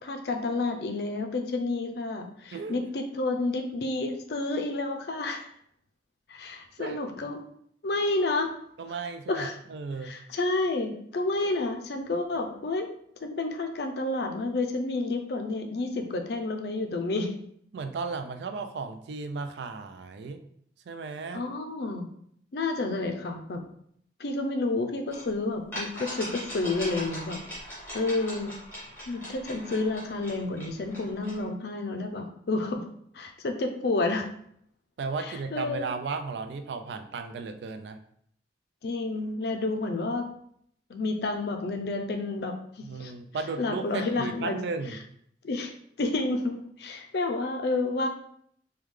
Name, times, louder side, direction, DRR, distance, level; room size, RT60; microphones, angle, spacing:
voice 1, 0.0-5.5 6.3-7.5 7.8-8.5 9.3-9.6 10.0-12.9 13.2-17.3 21.3-22.1 22.5-23.6 24.2-27.4 27.9-28.5 29.1-32.8 33.1-34.3 35.2-35.9 38.8-40.3 40.9-43.1 43.6-44.6 45.4-45.7 46.0-48.1, left 2 dB, 60° left, 4 dB, 0.4 m, -30 dB
voice 2, 2.5-2.9 6.8-7.0 8.8-10.1 17.7-20.4 20.9-21.4 35.0-38.0 42.8-45.0, right 4 dB, 70° right, 7 dB, 0.3 m, -35 dB
sound 1, 25.1-25.2 25.7-31.4, equal, 10° left, 1.2 m, -40 dB
3.4 x 2.3 x 3.2 m, 0.67 s
head